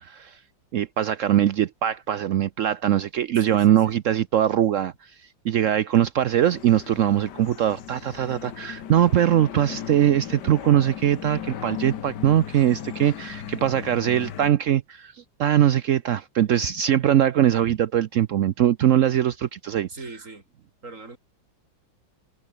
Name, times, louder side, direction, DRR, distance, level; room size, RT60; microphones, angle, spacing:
voice 1, 0.0-0.4 0.7-5.1 5.4-15.1 15.4-19.9, right 11 dB, 80° right, 0.7 m, -21 dB
voice 2, 3.4-4.0 19.9-20.4 20.8-21.2, right 3 dB, 40° right, 4.0 m, -40 dB
sound 1, 6.4-14.5, left 9 dB, 60° left, 1.7 m, -37 dB
omnidirectional pair, 2.2 m